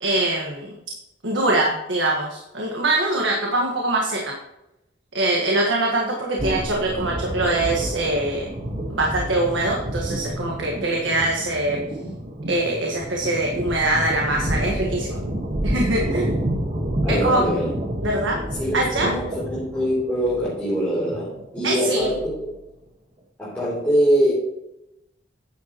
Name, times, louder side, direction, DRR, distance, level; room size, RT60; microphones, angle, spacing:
voice 1, 0.0-0.7 1.2-4.4 5.1-8.5 8.9-11.8 12.5-15.2 15.6-16.4 17.1-17.4 18.0-18.4 18.7-19.1 21.6-22.1, right 2 dB, 80° right, -1 dB, 1.6 m, -23 dB
sound 1, 6.4-22.6, right 1 dB, 45° right, 1.5 m, -29 dB
voice 2, 17.0-17.7 18.6-22.5 23.4-24.3, equal, 10° left, -9 dB, 3.5 m, -23 dB
10.0 x 8.0 x 3.1 m, 0.89 s
head